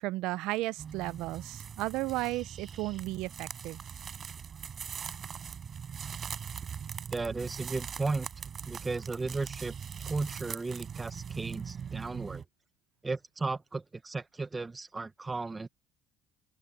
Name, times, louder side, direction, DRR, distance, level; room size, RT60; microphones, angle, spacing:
voice 1, 0.0-3.8, right 19 dB, 75° right, 0.7 m, -34 dB
sound 1, 0.8-12.5, right 7 dB, 40° right, 6.3 m, -41 dB
voice 2, 7.1-8.3 8.6-9.7 10.0-12.4 13.0-15.7, right 3 dB, 20° right, 1.7 m, -35 dB
open air
supercardioid pair, 80°, 0 cm